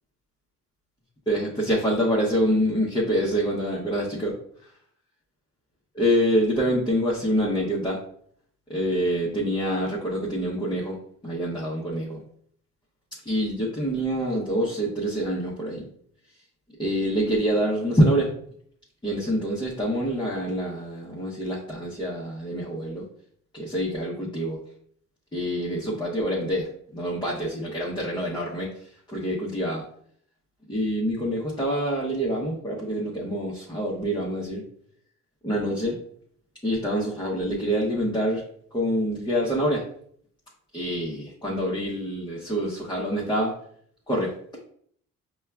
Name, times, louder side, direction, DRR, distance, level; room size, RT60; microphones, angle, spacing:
voice 1, 1.3-4.3 5.9-8.0 8.7-11.0 11.2-12.2 13.3-15.9 16.8-18.3 19.0-23.0 23.5-24.6 25.3-28.7 29.1-29.8 30.7-34.6 35.4-36.0 36.6-38.4 38.7-39.8 40.7-43.5 44.1-44.3, equal, 15° left, -5 dB, 0.8 m, -26 dB
5.3 x 2.3 x 2.3 m, 0.62 s
cardioid pair, 90°, 30 cm